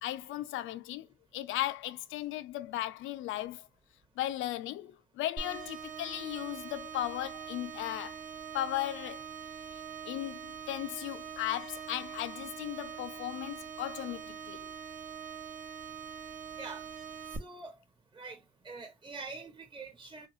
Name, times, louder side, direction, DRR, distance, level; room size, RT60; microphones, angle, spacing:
voice 1, 0.0-1.1 1.3-3.7 4.2-8.2 8.5-9.3 9.7-14.6, left 14 dB, 85° left, 0.4 m, -36 dB
sound 1, 5.4-17.4, right 7 dB, 40° right, 0.9 m, -43 dB
voice 2, 17.4-17.7 18.1-20.3, right 4 dB, 25° right, 1.2 m, -45 dB
3.3 x 2.3 x 3.0 m
cardioid pair, 90°, 20 cm